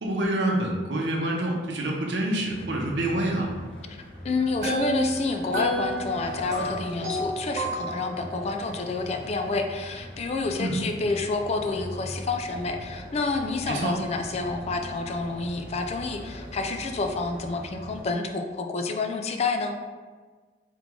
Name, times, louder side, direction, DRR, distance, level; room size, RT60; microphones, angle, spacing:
voice 1, 0.0-3.5 10.6-10.8 13.7-13.9, right 1 dB, 70° right, -1 dB, 0.8 m, -27 dB
sound 1, 2.5-18.0, equal, 5° left, 0.7 m, -42 dB
voice 2, 4.2-19.7, left 3 dB, 35° left, 4 dB, 0.3 m, -29 dB
sound 2, 4.4-8.4, equal, 45° right, 1.2 m, -31 dB
3.6 x 3.1 x 3.6 m, 1.4 s
head